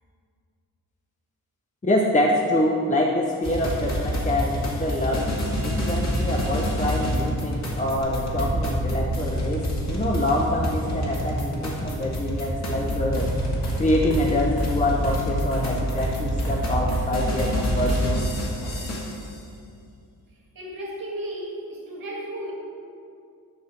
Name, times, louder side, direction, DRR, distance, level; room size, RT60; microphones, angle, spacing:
voice 1, 1.8-13.3 13.8-18.3, left 1 dB, 20° left, -1 dB, 0.7 m, -25 dB
sound 1, 3.4-19.3, equal, 45° left, 1.7 m, -28 dB
sound 2, 8.0-18.0 18.3-19.0, right 2 dB, 50° right, 0.8 m, -35 dB
sound 3, 12.8-18.1, right 1 dB, 75° left, 2.1 m, -29 dB
voice 2, 20.3-22.5, right 1 dB, 65° right, -2 dB, 2.1 m, -34 dB
11.0 x 5.5 x 4.2 m, 2.4 s
wide cardioid pair, 100°, 36 cm